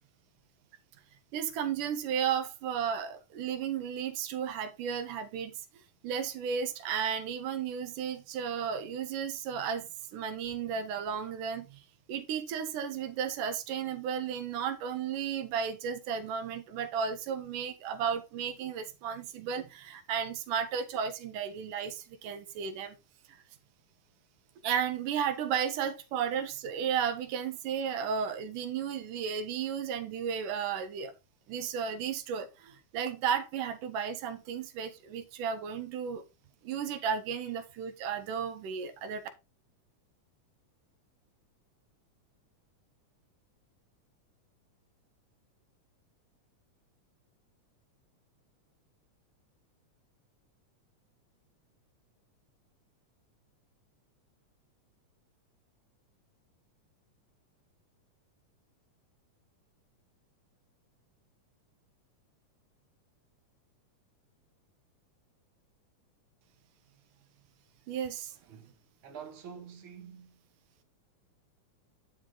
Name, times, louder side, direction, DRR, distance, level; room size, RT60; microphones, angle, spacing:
voice 1, 1.3-5.5 6.0-11.8 12.1-23.0 24.6-31.1 31.5-36.2 36.6-39.2 67.9-68.3, right 7 dB, 90° right, 2.7 m, -34 dB
voice 2, 68.5-70.4, right 7 dB, 45° right, 2.5 m, -47 dB
10.5 x 5.2 x 3.9 m
omnidirectional pair, 3.6 m